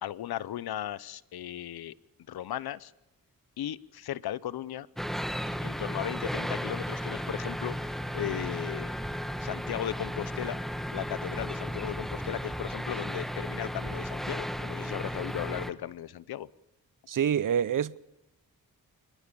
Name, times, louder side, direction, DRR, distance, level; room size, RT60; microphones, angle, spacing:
voice 1, 0.0-1.9 2.3-2.9 3.6-4.9 5.6-9.0 9.4-10.6 10.9-16.5, left 11 dB, 85° left, 0.8 m, -36 dB
sound 1, 5.0-15.7, equal, ahead, 1.5 m, -34 dB
voice 2, 17.1-18.0, right 9 dB, 60° right, 0.8 m, -26 dB
25.5 x 22.0 x 7.0 m
cardioid pair, 75°, 36 cm